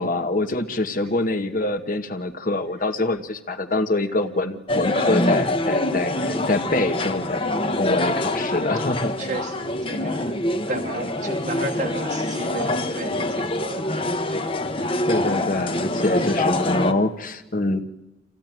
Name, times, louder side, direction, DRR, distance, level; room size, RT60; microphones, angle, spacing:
voice 1, 0.0-7.4 7.8-9.1 15.1-17.8, left 2 dB, 45° left, 1.3 m, -25 dB
sound 1, 4.7-16.9, left 1 dB, 30° left, 1.0 m, -25 dB
voice 2, 8.5-8.9 9.2-10.4 10.7-14.8, right 2 dB, 45° right, 1.1 m, -34 dB
26.5 x 15.5 x 9.2 m
head